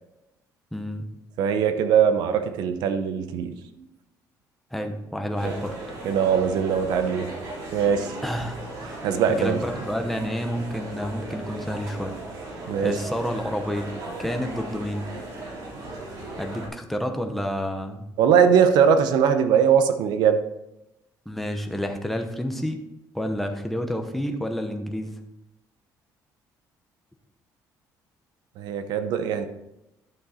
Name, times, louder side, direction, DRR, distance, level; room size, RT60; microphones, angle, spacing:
voice 1, 0.7-1.1 4.7-5.7 8.2-8.6 9.3-12.1 12.8-13.9 14.2-15.1 16.4-18.1 21.3-22.8 23.1-25.2, equal, 5° left, 5 dB, 0.9 m, -29 dB
voice 2, 1.4-3.6 5.4-5.6 6.0-7.3 7.7-8.2 9.0-9.6 12.7-13.0 18.2-20.4 28.6-29.5, right 7 dB, 85° right, 9 dB, 0.9 m, -21 dB
sound 1, 5.3-16.7, right 2 dB, 60° right, 3.0 m, -37 dB
11.0 x 6.2 x 4.3 m, 0.90 s
cardioid pair, 170°, 7 cm